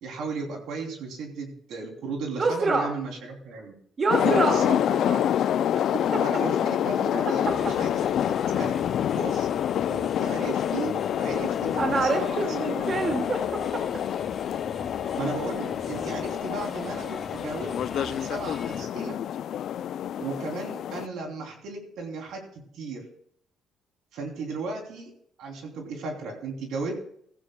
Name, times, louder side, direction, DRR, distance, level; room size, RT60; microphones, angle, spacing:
voice 1, 0.0-3.7 4.2-5.3 6.2-8.1 8.5-8.7 9.1-9.5 9.9-12.9 15.2-19.2 20.2-22.4 22.7-23.0 24.1-25.1 25.4-27.0, right 3 dB, 75° right, 2 dB, 3.2 m, -35 dB
voice 2, 2.3-2.9 4.0-4.6 5.7-6.2 7.5-7.6 11.8-13.8, right 3 dB, 40° right, 3 dB, 2.0 m, -26 dB
sound 1, 4.1-21.1, left 10 dB, 65° left, 0.4 m, -27 dB
sound 2, 7.4-18.8, left 4 dB, 40° left, 2.8 m, -40 dB
15.5 x 15.0 x 2.3 m, 0.65 s
cardioid pair, 90°, 0 cm